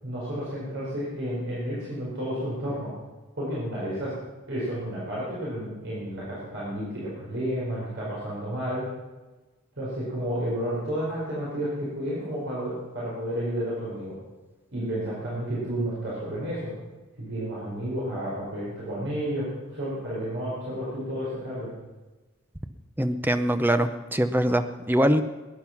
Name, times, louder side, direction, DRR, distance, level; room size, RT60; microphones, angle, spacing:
voice 1, 0.0-2.9 3.3-4.1 4.5-8.8 9.8-14.2 14.7-16.7 17.2-19.5 19.7-21.7, equal, 60° right, -8 dB, 5.1 m, -31 dB
voice 2, 23.0-25.2, right 1 dB, 10° right, 9 dB, 0.7 m, -23 dB
20.5 x 10.5 x 6.1 m, 1.2 s
head